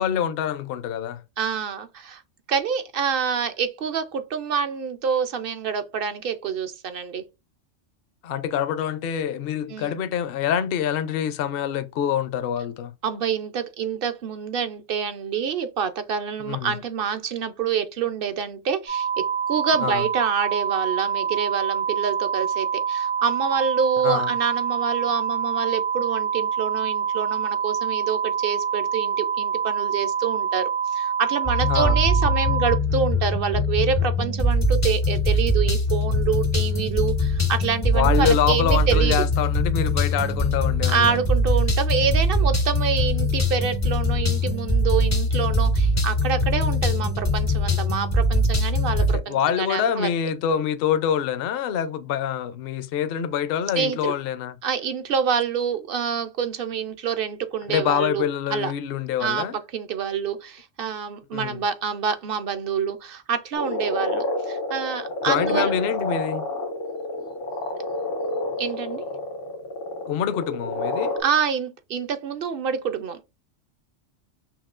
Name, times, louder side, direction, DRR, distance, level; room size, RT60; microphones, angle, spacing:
voice 1, 0.0-1.2 8.2-12.9 16.5-16.7 19.8-20.0 24.0-24.3 31.7-32.0 37.9-41.2 49.0-54.6 57.7-59.6 61.3-61.6 65.2-66.5 70.1-71.1, left 9 dB, 60° left, 0.7 m, -25 dB
voice 2, 1.4-2.2 2.5-7.2 9.7-10.0 13.0-39.2 40.9-50.1 53.8-54.1 54.6-58.2 58.5-58.7 59.2-59.5 59.7-65.7 68.6-69.0 71.2-73.2, right 7 dB, 60° right, 0.7 m, -27 dB
sound 1, 18.9-32.8, right 7 dB, 85° right, 2.4 m, -26 dB
sound 2, 31.5-49.2, left 1 dB, 20° left, 0.4 m, -22 dB
sound 3, 63.5-71.2, left 1 dB, 85° left, 1.8 m, -29 dB
5.8 x 2.3 x 2.4 m
omnidirectional pair, 1.3 m